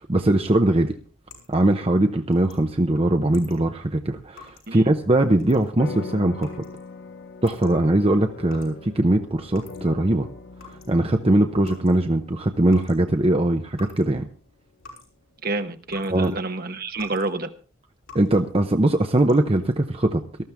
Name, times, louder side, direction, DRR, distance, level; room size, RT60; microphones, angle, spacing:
voice 1, 0.1-0.9 1.5-6.6 7.4-10.3 10.7-14.3 16.1-16.4 18.1-20.4, right 1 dB, 30° right, 5 dB, 0.8 m, -21 dB
sound 1, 0.7-10.1 10.4-16.3 16.7-17.4 17.6-18.5 19.0-19.7, left 4 dB, 80° left, 6.2 m, -49 dB
sound 2, 5.8-14.5, left 4 dB, 60° left, 1.1 m, -41 dB
voice 2, 15.4-17.5, right 2 dB, 45° right, 8 dB, 1.2 m, -28 dB
18.5 x 13.5 x 3.5 m, 0.38 s
head